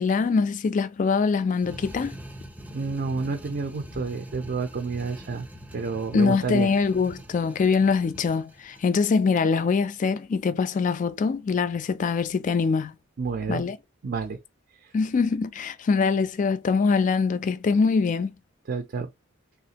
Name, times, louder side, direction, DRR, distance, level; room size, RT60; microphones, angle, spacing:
voice 1, 0.0-2.1 6.1-12.9 13.5-13.8 14.9-18.3, left 5 dB, 40° left, 0.3 m, -23 dB
sound 1, 1.5-8.9, equal, 10° right, 0.6 m, -43 dB
voice 2, 2.7-5.5 5.7-6.7 13.2-13.6 14.0-14.4 14.7-14.9 18.7-19.1, right 4 dB, 50° right, 0.4 m, -29 dB
3.4 x 2.4 x 2.8 m
head